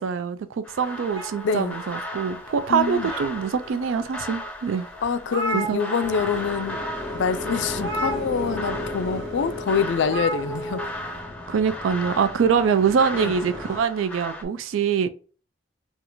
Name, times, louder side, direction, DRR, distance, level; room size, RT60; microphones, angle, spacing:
voice 1, 0.0-4.9 5.5-5.8 11.5-15.1, right 6 dB, 85° right, 0.3 m, -24 dB
sound 1, 0.6-14.4, left 1 dB, 5° left, 0.6 m, -36 dB
sound 2, 1.1-2.3 2.8-3.7 4.3-4.4 4.7-4.8 5.0-6.4 6.7-6.9 7.8-8.8 10.0-10.9, right 1 dB, 70° right, 1.9 m, -32 dB
voice 2, 1.4-1.8 2.7-3.1 5.0-6.8 7.1-10.8 13.2-13.3, left 6 dB, 65° left, 0.4 m, -25 dB
sound 3, 6.0-13.8, left 1 dB, 20° right, 1.5 m, -36 dB
4.3 x 2.4 x 2.6 m
head